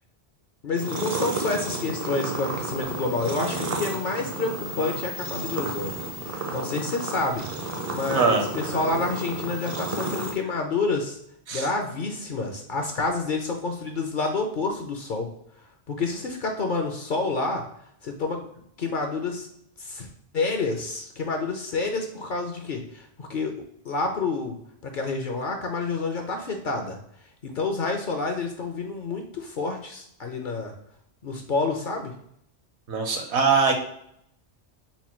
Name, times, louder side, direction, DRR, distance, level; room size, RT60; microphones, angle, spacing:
voice 1, 0.6-6.0 6.5-7.5 7.9-11.2 11.5-15.3 15.9-17.6 18.0-18.5 18.8-19.5 19.8-20.1 20.3-23.5 23.8-24.6 24.8-27.0 27.4-30.7 31.2-32.1, left 3 dB, 55° left, 3 dB, 0.6 m, -28 dB
sound 1, 0.8-10.3, right 2 dB, 40° right, 0.5 m, -32 dB
voice 2, 8.1-8.5 11.5-11.7 32.9-33.7, right 5 dB, 75° right, 3 dB, 1.1 m, -22 dB
4.2 x 2.2 x 4.3 m, 0.72 s
omnidirectional pair, 1.2 m